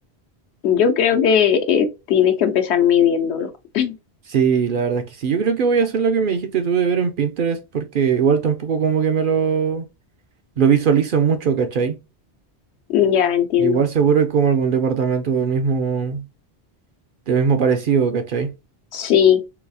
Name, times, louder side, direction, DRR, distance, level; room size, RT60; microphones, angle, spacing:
voice 1, 0.6-3.5 3.7-3.9 12.9-13.8 18.9-19.4, left 8 dB, 80° left, 0.9 m, -17 dB
voice 2, 4.3-9.9 10.6-12.0 13.6-16.3 17.3-18.5, right 6 dB, 60° right, 0.6 m, -20 dB
3.9 x 2.3 x 2.6 m
omnidirectional pair, 1.1 m